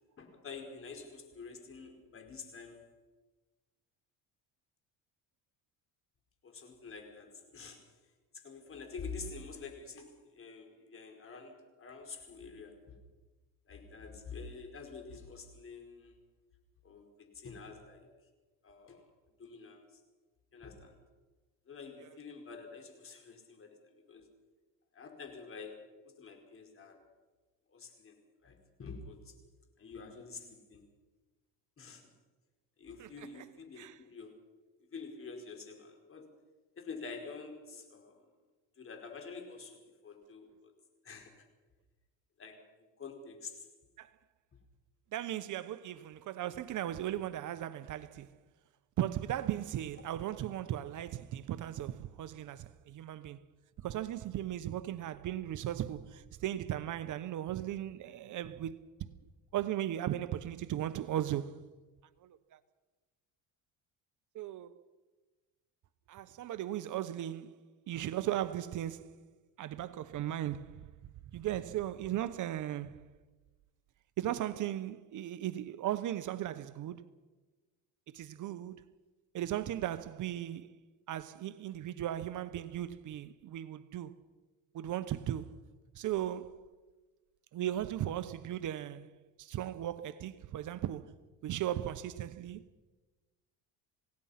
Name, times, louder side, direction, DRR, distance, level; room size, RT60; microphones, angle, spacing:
voice 1, 0.2-2.9 6.4-7.8 8.3-12.9 13.7-16.2 16.8-18.1 18.6-19.0 19.4-19.9 20.5-20.9 21.7-24.3 24.9-25.8 26.2-27.0 27.7-28.2 28.4-29.3 29.8-30.8 31.8-32.1 32.8-34.3 34.9-36.3 36.8-38.2 38.8-40.7 41.0-41.5 42.4-42.7 43.0-43.6, left 4 dB, 35° left, 5.0 m, -47 dB
voice 2, 33.0-33.5 33.8-34.0 44.0-44.1 45.1-48.3 49.0-53.4 53.8-58.8 59.5-61.7 62.2-62.6 64.3-64.7 66.1-67.6 67.9-69.2 69.6-70.9 71.3-73.1 74.2-77.1 78.1-78.8 79.3-80.8 81.1-84.2 84.7-85.6 85.9-86.7 87.5-91.2 91.4-92.6, right 12 dB, 55° right, 1.0 m, -37 dB
27.5 x 17.5 x 5.8 m
cardioid pair, 110°, 38 cm